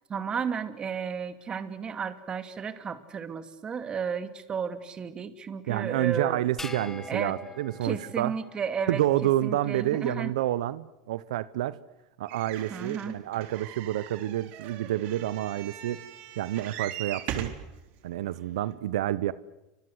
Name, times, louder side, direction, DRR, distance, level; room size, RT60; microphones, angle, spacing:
voice 1, 0.1-6.4 7.1-7.3 7.8-10.3 12.7-13.2, right 6 dB, 25° right, 10 dB, 2.5 m, -33 dB
voice 2, 5.7-8.3 8.9-11.8 12.2-16.0 16.4-17.5 18.0-19.3, right 14 dB, 85° right, 16 dB, 0.9 m, -29 dB
sound 1, 6.6-9.1, left 3 dB, 10° left, 2.1 m, -44 dB
sound 2, 12.3-17.7 18.4-18.5 18.7-18.8, right 11 dB, 55° right, 3.7 m, -40 dB
29.5 x 25.0 x 8.1 m, 0.98 s
supercardioid pair, 125°, 3 cm